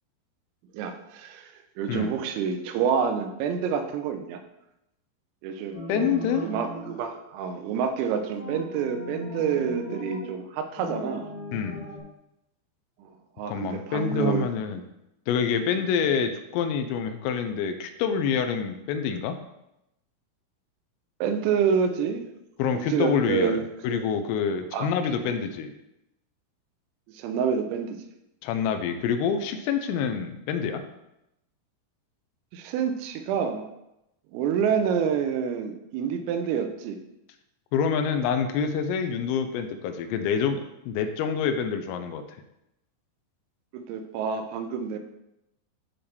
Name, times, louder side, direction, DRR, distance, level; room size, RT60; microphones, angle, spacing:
voice 1, 0.7-4.4 5.4-11.3 13.0-14.5 15.8-15.9 21.2-22.3 22.7-24.1 24.7-24.9 25.2-25.3 27.1-28.0 32.5-33.7 34.3-37.0 43.7-45.0, right 7 dB, 90° right, 7 dB, 3.4 m, -28 dB
sound 1, 5.7-7.0 8.3-10.3 10.8-12.0, left 1 dB, 60° left, 1.2 m, -38 dB
voice 2, 5.9-6.5 11.5-11.9 13.5-14.8 15.3-19.4 22.6-23.6 23.8-25.7 28.4-30.8 37.7-42.2, left 7 dB, 85° left, 7 dB, 3.3 m, -27 dB
12.5 x 4.3 x 3.4 m, 0.86 s
omnidirectional pair, 5.9 m